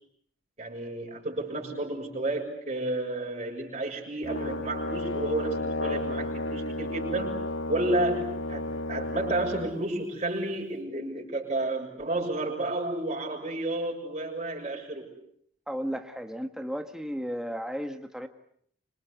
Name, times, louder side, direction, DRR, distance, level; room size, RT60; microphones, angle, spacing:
voice 1, 0.6-7.4 7.7-15.1, right 2 dB, 35° right, 0 dB, 6.7 m, -31 dB
Brass instrument, 4.2-9.7, left 2 dB, 70° left, 2.4 m, -32 dB
voice 2, 15.7-18.3, equal, 5° right, 6 dB, 1.5 m, -34 dB
27.0 x 26.5 x 8.2 m, 0.66 s
head